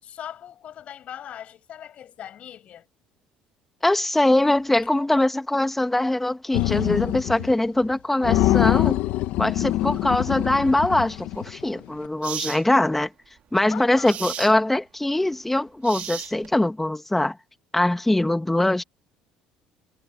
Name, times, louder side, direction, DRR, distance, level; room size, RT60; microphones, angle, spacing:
voice 1, 0.0-2.9 13.7-14.2, left 10 dB, 55° left, 7.6 m, -40 dB
voice 2, 3.8-9.0 9.4-13.1 13.5-17.4 17.7-18.8, left 1 dB, 10° left, 1.9 m, -22 dB
sound 1, 6.5-7.5 7.8-7.9 8.2-11.6, left 15 dB, 75° left, 1.8 m, -24 dB
sound 2, 11.3-11.5 12.2-12.6 14.0-14.6 15.8-16.6, right 10 dB, 60° right, 2.3 m, -34 dB
cardioid pair, 100°, 3 cm